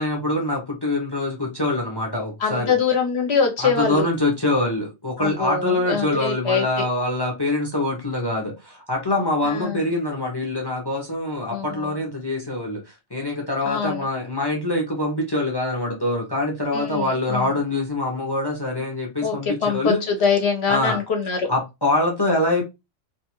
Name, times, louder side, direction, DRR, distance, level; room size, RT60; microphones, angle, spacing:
voice 1, 0.0-2.7 3.6-20.0 20.7-21.0 21.5-22.6, left 2 dB, 35° left, 0.3 m, -24 dB
voice 2, 2.4-4.1 5.2-6.8 9.4-9.8 11.5-12.0 13.7-14.1 16.7-17.5 19.2-21.5, left 5 dB, 65° left, 0.7 m, -24 dB
2.6 x 2.3 x 2.9 m
omnidirectional pair, 1.4 m